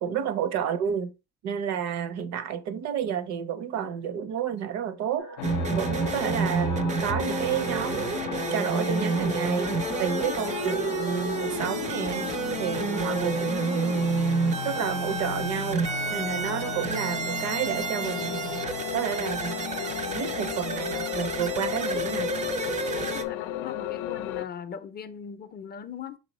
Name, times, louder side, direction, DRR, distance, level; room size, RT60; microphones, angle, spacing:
voice 1, 0.0-1.1 1.4-5.4 5.7-8.1 8.5-12.3 12.6-14.2 14.6-18.6 18.9-19.7 20.1-22.4, right 8 dB, 65° right, 0.7 m, -30 dB
sound 1, 5.2-14.8, right 5 dB, 85° right, 1.4 m, -46 dB
sound 2, 5.4-24.4, left 11 dB, 85° left, 0.5 m, -34 dB
sound 3, 5.4-23.2, right 5 dB, 25° right, 0.4 m, -30 dB
voice 2, 23.0-26.2, left 7 dB, 35° left, 0.4 m, -40 dB
5.3 x 3.2 x 3.0 m
cardioid pair, 135°, 29 cm